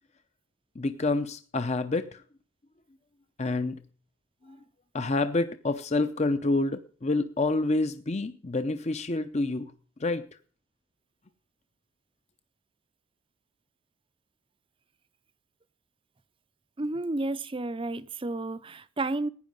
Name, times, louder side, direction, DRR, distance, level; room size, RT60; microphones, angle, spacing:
voice 1, 0.8-2.2 3.4-3.8 4.5-4.6 4.9-9.7 10.0-10.3, left 2 dB, 30° left, 0.6 m, -28 dB
voice 2, 16.8-19.3, right 2 dB, 25° right, 0.6 m, -31 dB
15.5 x 10.5 x 5.3 m
head